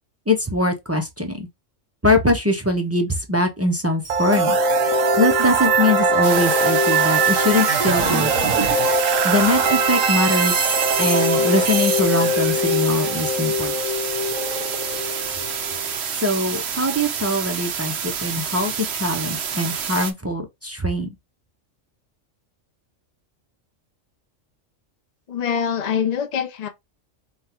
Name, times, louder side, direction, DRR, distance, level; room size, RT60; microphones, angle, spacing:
voice 1, 0.3-1.5 2.0-4.6 5.2-8.5 9.2-10.7 11.0-13.7 16.2-21.1, left 1 dB, 20° right, 0.4 m, -22 dB
sound 1, 4.1-15.9, right 2 dB, 90° right, 1.3 m, -21 dB
sound 2, 6.2-20.1, right 7 dB, 60° right, 0.9 m, -28 dB
voice 2, 25.3-26.7, left 7 dB, 50° left, 0.5 m, -24 dB
5.4 x 2.3 x 2.8 m
omnidirectional pair, 1.3 m